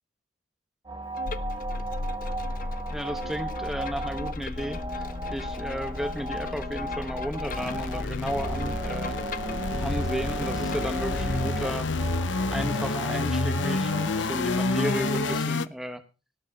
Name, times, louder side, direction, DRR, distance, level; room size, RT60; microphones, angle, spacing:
sound 1, 0.9-15.4, right 2 dB, 25° right, 2.1 m, -36 dB
Bowed string instrument, 1.1-11.7, left 4 dB, 45° left, 1.0 m, -43 dB
sound 2, 1.3-15.7, left 3 dB, 70° left, 0.8 m, -30 dB
voice 1, 2.9-9.2 9.8-11.9 12.5-16.0, equal, ahead, 7 dB, 1.0 m, -33 dB
18.0 x 6.8 x 6.5 m, 0.32 s
head